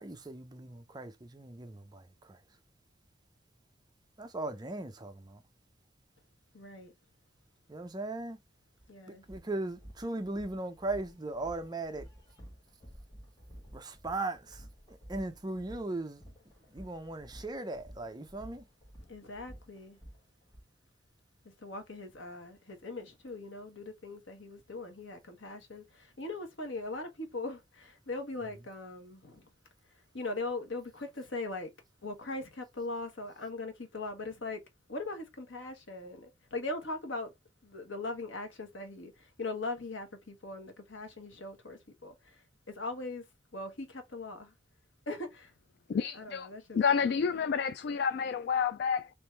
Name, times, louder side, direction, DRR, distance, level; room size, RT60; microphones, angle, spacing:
voice 1, 0.0-2.4 4.2-5.4 7.7-8.4 9.1-12.1 13.7-14.6 14.9-16.2 16.7-18.6, right 2 dB, 20° right, 0.5 m, -38 dB
voice 2, 6.5-6.9 8.9-9.2 19.1-20.0 21.4-29.5 30.1-31.7 32.0-34.6 34.9-37.3 37.6-43.2 43.5-44.5 45.1-45.5 45.9-47.2, left 2 dB, 80° left, 1.3 m, -40 dB
sound 1, 8.8-8.9 9.2-20.6, equal, 20° left, 1.6 m, -52 dB
voice 3, 45.9-49.1, left 6 dB, 60° left, 0.3 m, -30 dB
3.6 x 3.0 x 4.4 m
head